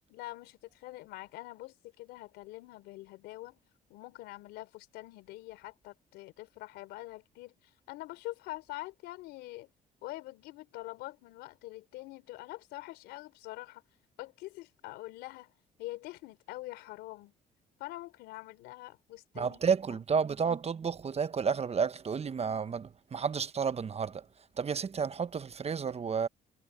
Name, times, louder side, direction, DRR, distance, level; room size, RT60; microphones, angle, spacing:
voice 1, 0.1-3.6 3.9-9.7 10.0-13.8 14.2-15.5 15.8-17.3 17.8-19.8, left 18 dB, 85° left, 4.1 m, -45 dB
voice 2, 19.3-24.3 24.6-26.3, right 6 dB, 40° right, 1.1 m, -31 dB
supercardioid pair, 65°, 17 cm